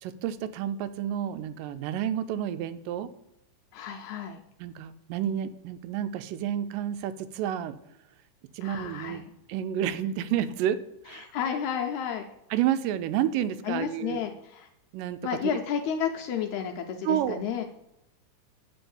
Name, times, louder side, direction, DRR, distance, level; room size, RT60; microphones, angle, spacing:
voice 1, 0.0-3.1 4.6-7.8 8.5-9.2 9.5-11.3 12.5-14.2 14.9-15.2 15.4-15.6 17.0-17.4, right 10 dB, 90° right, 13 dB, 2.2 m, -30 dB
voice 2, 3.7-4.4 8.6-9.3 11.1-12.2 13.6-14.7 15.2-17.6, left 8 dB, 80° left, 3 dB, 1.7 m, -31 dB
9.1 x 4.0 x 7.1 m, 0.86 s
omnidirectional pair, 3.8 m